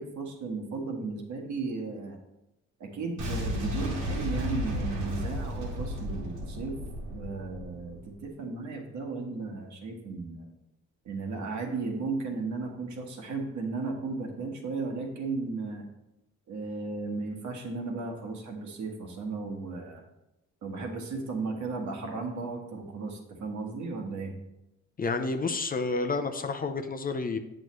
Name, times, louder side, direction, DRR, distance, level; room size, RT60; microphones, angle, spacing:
voice 1, 0.0-2.2 2.8-6.8 7.1-10.5 11.0-15.9 16.5-20.0 20.6-24.3, right 3 dB, 70° right, 2 dB, 1.5 m, -35 dB
Boom, 3.2-8.1, equal, 85° right, 2.0 m, -33 dB
voice 2, 25.0-27.4, left 3 dB, 30° left, 6 dB, 0.6 m, -30 dB
7.9 x 6.4 x 3.1 m, 0.93 s
cardioid pair, 90°, 30 cm